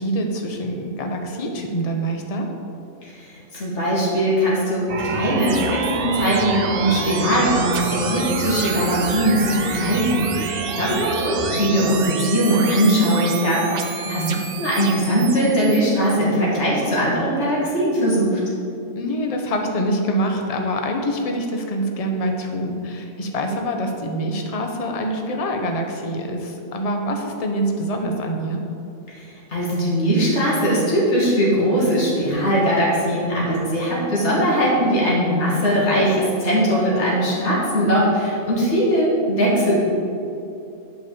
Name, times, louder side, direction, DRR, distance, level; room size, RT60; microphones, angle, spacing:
voice 1, 0.0-2.5 10.9-11.0 14.0-14.4 19.0-28.6, equal, 30° left, 3 dB, 0.8 m, -25 dB
voice 2, 3.0-14.3 14.6-18.4 29.2-39.8, equal, 55° left, -6 dB, 2.5 m, -20 dB
sound 1, 4.9-15.8, right 5 dB, 50° right, 0.8 m, -27 dB
8.7 x 5.2 x 6.8 m, 2.8 s
omnidirectional pair, 1.4 m